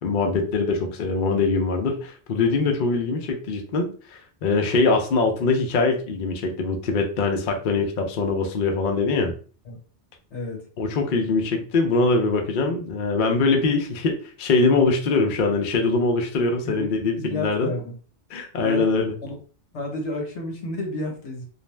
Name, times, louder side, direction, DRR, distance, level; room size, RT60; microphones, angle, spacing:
voice 1, 0.0-9.3 10.8-17.7 18.3-19.1, left 3 dB, 55° left, 3 dB, 0.6 m, -23 dB
voice 2, 10.3-10.7 16.4-16.9 17.2-17.9 18.6-19.4 19.7-21.4, left 2 dB, 75° left, 1 dB, 1.2 m, -31 dB
2.5 x 2.0 x 3.1 m, 0.41 s
omnidirectional pair, 1.2 m